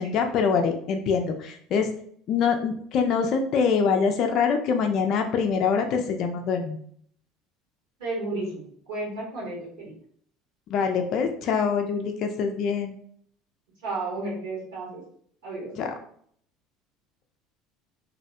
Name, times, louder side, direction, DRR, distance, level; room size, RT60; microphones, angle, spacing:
voice 1, 0.0-1.9 2.3-6.8 10.7-13.0 15.8-15.9, left 6 dB, 50° left, 4 dB, 0.4 m, -24 dB
voice 2, 8.0-8.6 8.9-9.9 13.8-15.0 15.4-15.7, right 2 dB, 65° right, -4 dB, 1.1 m, -32 dB
3.0 x 2.6 x 2.6 m, 0.62 s
figure-of-eight pair, 65°, 0 cm